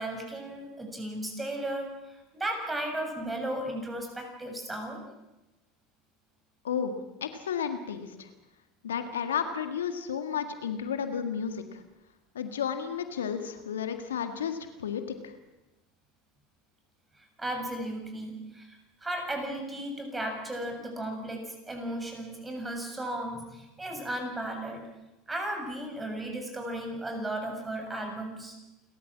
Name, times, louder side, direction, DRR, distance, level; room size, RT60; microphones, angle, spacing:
voice 1, 0.0-5.0 17.4-24.9 25.3-28.5, right 1 dB, 15° right, 4 dB, 7.1 m, -35 dB
voice 2, 6.6-8.3 8.8-11.8 12.4-15.3, left 7 dB, 85° left, 8 dB, 1.8 m, -32 dB
29.5 x 13.5 x 7.5 m, 1.0 s
hypercardioid pair, 85°, 0 cm